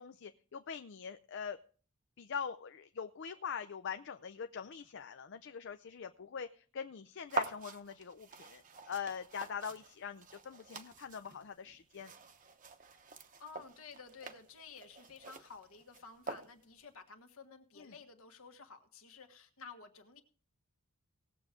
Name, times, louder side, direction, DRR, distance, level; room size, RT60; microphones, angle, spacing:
voice 1, 0.0-1.6 2.2-12.1 17.8-17.9, left 6 dB, 55° left, 9 dB, 0.5 m, -43 dB
sound 1, 7.3-16.8, right 3 dB, 35° right, 0.9 m, -45 dB
voice 2, 13.4-20.2, left 5 dB, 70° left, 6 dB, 1.6 m, -53 dB
19.0 x 7.5 x 3.6 m, 0.42 s
head